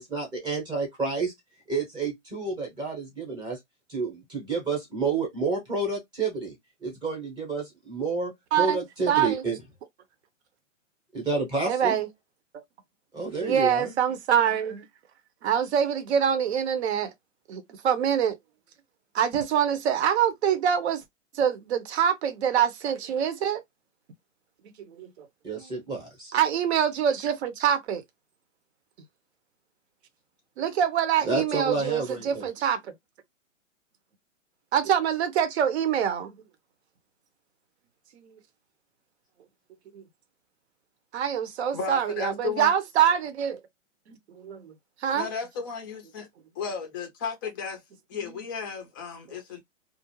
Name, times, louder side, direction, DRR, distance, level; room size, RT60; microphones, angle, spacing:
voice 1, 0.0-1.3 1.7-3.6 3.9-9.6 11.1-12.0 13.1-13.9 25.4-26.3 31.2-32.5, right 4 dB, 10° right, 0.8 m, -30 dB
voice 2, 9.1-9.4 11.7-12.1 13.4-14.8 15.4-17.1 17.5-18.4 19.1-21.0 21.3-23.6 24.9-25.3 26.3-28.0 30.6-32.8 34.7-36.3 38.1-38.3 39.9-40.0 41.1-43.6 44.3-44.7 45.0-45.3 48.2-48.3, right 8 dB, 55° right, 0.7 m, -25 dB
voice 3, 41.7-42.7 45.1-46.3 46.6-47.8 48.1-49.6, left 5 dB, 15° left, 0.4 m, -34 dB
2.4 x 2.0 x 3.0 m
hypercardioid pair, 145°, 39 cm